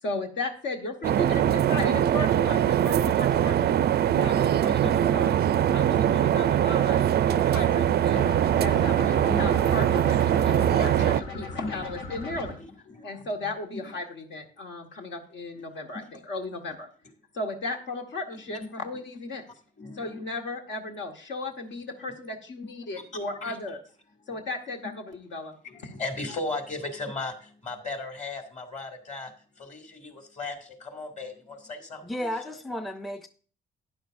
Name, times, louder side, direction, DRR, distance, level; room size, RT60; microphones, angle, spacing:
voice 1, 0.0-3.8 4.2-5.4 5.7-8.2 8.6-12.6 13.0-16.9 17.3-19.4 19.9-23.8 24.3-25.5, left 3 dB, 65° left, 3 dB, 1.5 m, -35 dB
sound 1, 1.0-11.2, right 10 dB, 55° right, 0.4 m, -22 dB
voice 2, 3.3-3.7 4.1-5.4 7.4-7.6 8.1-8.3 8.7-8.8 9.3-9.6 10.7-11.0 11.3-11.8 12.9-13.3 13.7-13.9 15.5-15.6 16.0-16.1 18.5-18.6 19.8-20.2 23.4-23.5 25.6-32.5, left 3 dB, 35° left, 5 dB, 2.4 m, -38 dB
sound 2, 8.1-12.5, left 3 dB, 90° left, 2.3 m, -38 dB
voice 3, 32.0-33.3, equal, ahead, 9 dB, 0.5 m, -33 dB
12.0 x 9.7 x 2.6 m, 0.43 s
cardioid pair, 90°, 20 cm